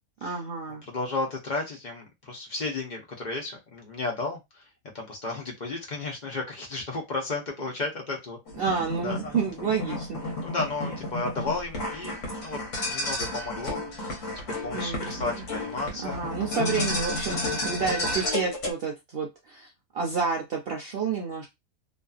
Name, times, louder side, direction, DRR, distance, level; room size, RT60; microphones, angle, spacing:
voice 1, 0.2-0.8 8.5-10.2 14.7-15.4 16.0-19.7 19.9-21.5, right 5 dB, 60° right, 0 dB, 0.6 m, -30 dB
voice 2, 0.9-4.7 4.9-8.4 8.7-9.2 9.9-10.0 10.4-12.1 12.4-12.6 12.9-16.2 16.7-16.9 17.6-17.7, left 3 dB, 45° left, 0 dB, 0.7 m, -33 dB
sound 1, 8.5-18.7, left 1 dB, 60° left, 1.2 m, -32 dB
2.6 x 2.4 x 2.3 m, 0.20 s
omnidirectional pair, 1.5 m